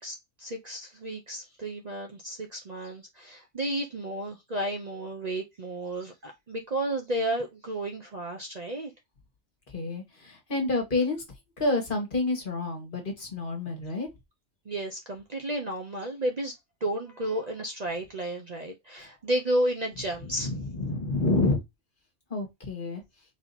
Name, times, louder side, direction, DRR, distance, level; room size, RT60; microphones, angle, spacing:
voice 1, 0.0-8.9 14.7-16.5 16.8-20.5, right 1 dB, 40° right, 0.7 m, -32 dB
voice 2, 9.7-11.2 11.6-14.1 20.4-21.6 22.3-23.0, left 2 dB, 45° left, 1.6 m, -28 dB
4.2 x 2.8 x 4.0 m
omnidirectional pair, 1.2 m